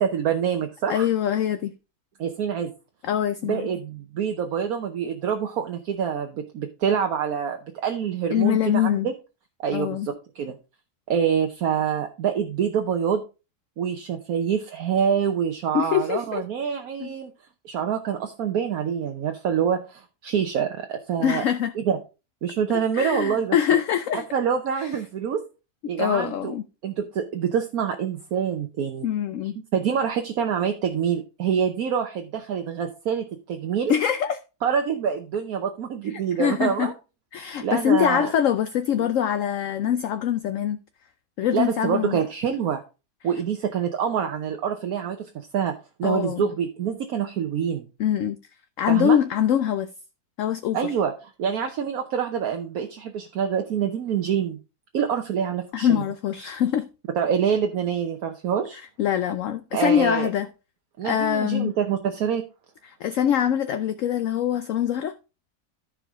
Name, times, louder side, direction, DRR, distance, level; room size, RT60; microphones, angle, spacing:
voice 1, 0.0-1.1 2.2-2.7 3.4-9.1 9.6-10.5 11.1-13.2 13.8-17.3 17.6-21.4 21.8-22.0 22.4-23.6 24.3-25.4 25.9-26.5 26.8-29.1 29.7-33.9 34.6-36.9 37.6-38.3 41.5-42.8 43.2-45.7 46.0-47.9 48.9-49.2 50.7-51.1 51.4-54.6 54.9-56.0 57.1-58.8 59.7-60.3 61.0-62.4, right 7 dB, 70° right, 1.3 m, -26 dB
voice 2, 0.9-1.7 3.0-3.7 8.3-9.1 9.7-10.1 15.7-16.4 17.0-17.1 21.2-21.7 22.9-24.2 24.8-24.9 25.8-26.6 29.0-29.6 33.9-34.4 36.4-36.9 37.3-40.8 41.4-42.2 46.0-46.5 48.0-48.4 48.8-49.9 50.4-50.9 55.7-56.9 59.0-60.5 61.0-61.7 62.8-65.1, left 9 dB, 65° left, 0.9 m, -23 dB
14.0 x 4.8 x 3.5 m
omnidirectional pair, 1.6 m